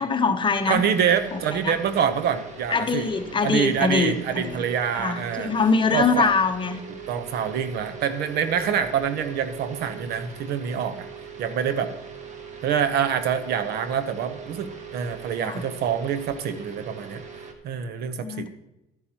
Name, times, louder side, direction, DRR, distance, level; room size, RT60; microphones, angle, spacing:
voice 1, 0.0-0.8 1.3-1.7 2.7-4.6 4.9-6.8 15.4-15.6 18.2-18.5, left 4 dB, 30° left, 7 dB, 0.9 m, -23 dB
sound 1, 0.5-17.5, right 5 dB, 45° right, 1.3 m, -41 dB
voice 2, 0.7-3.1 3.4-5.5 5.9-6.3 7.1-11.1 11.4-11.9 12.6-17.2 17.6-18.5, right 8 dB, 70° right, 10 dB, 0.9 m, -26 dB
12.0 x 9.9 x 2.9 m, 0.88 s
cardioid pair, 110°, 17 cm